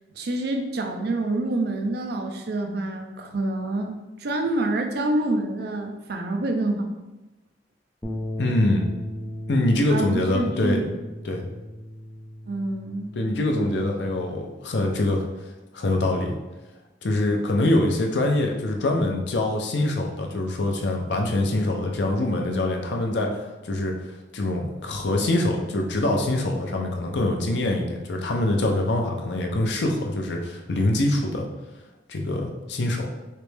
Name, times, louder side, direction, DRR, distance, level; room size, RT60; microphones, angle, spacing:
voice 1, 0.1-3.9 4.2-6.9 9.9-10.9 12.5-13.1, right 2 dB, 60° right, 4 dB, 0.5 m, -27 dB
sound 1, 8.0-14.3, left 1 dB, 15° left, 0.4 m, -36 dB
voice 2, 8.4-8.9 9.5-10.9 11.2-11.4 13.2-15.2 15.7-16.4 17.0-31.5 32.1-33.1, left 1 dB, 70° left, 2 dB, 0.6 m, -24 dB
3.3 x 3.0 x 3.3 m, 1.1 s
head